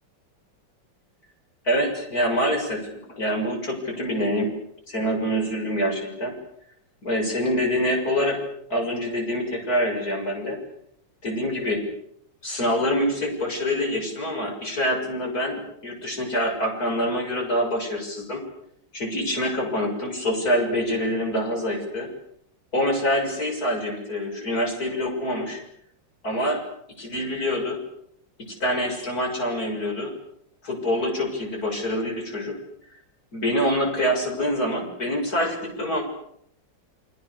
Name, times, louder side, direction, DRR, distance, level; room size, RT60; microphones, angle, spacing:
voice 1, 1.6-4.5 4.9-6.3 7.0-8.4 8.7-10.6 11.2-11.8 12.4-18.4 18.9-22.1 22.7-25.6 26.2-26.6 27.0-27.8 28.4-30.1 30.6-32.6 33.3-36.0, equal, 50° left, 3 dB, 7.2 m, -25 dB
29.5 x 24.5 x 6.8 m, 0.71 s
omnidirectional pair, 2.0 m